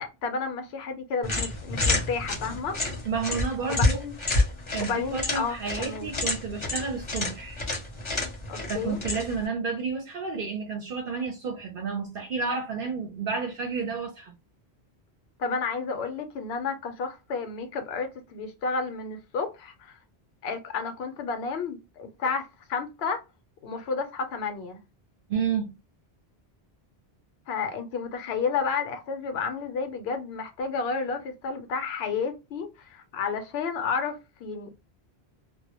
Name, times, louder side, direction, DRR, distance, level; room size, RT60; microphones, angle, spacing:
voice 1, 0.0-2.8 3.9-4.1 4.8-6.1 8.5-9.0 15.4-20.0 20.4-23.2 23.6-24.8 27.5-34.7, left 5 dB, 75° left, 0.8 m, -31 dB
sound 1, 1.2-9.5, left 2 dB, 35° left, 0.6 m, -29 dB
voice 2, 3.0-4.0 4.7-7.6 8.7-14.3 25.3-25.7, right 5 dB, 60° right, 0.7 m, -31 dB
2.1 x 2.0 x 2.8 m
omnidirectional pair, 1.1 m